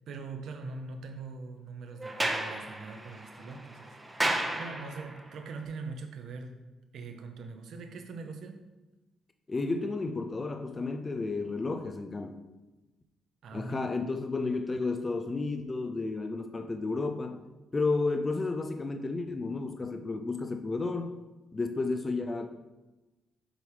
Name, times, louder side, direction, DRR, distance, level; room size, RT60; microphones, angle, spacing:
voice 1, 0.1-6.6 6.9-8.6 13.4-13.9, right 4 dB, 70° right, 5 dB, 0.9 m, -42 dB
Sliding door, 2.0-5.3, right 1 dB, 10° right, 0.9 m, -33 dB
voice 2, 9.5-12.4 13.5-17.4 17.7-21.1 21.5-22.5, left 3 dB, 25° left, 6 dB, 0.5 m, -32 dB
7.5 x 3.4 x 4.9 m, 1.1 s
cardioid pair, 90°, 0 cm